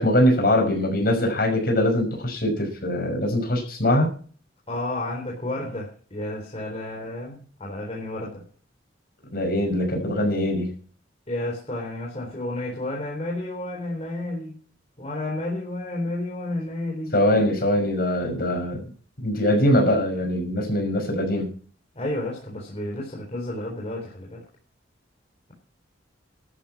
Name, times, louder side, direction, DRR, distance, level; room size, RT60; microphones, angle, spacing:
voice 1, 0.0-4.1 9.3-10.7 17.1-18.8 19.2-21.5, left 1 dB, 55° left, 2 dB, 6.0 m, -22 dB
voice 2, 4.7-8.4 11.3-14.5 15.0-17.1 22.0-24.4, left 1 dB, 35° left, -3 dB, 3.8 m, -31 dB
13.0 x 11.0 x 6.0 m, 0.42 s
head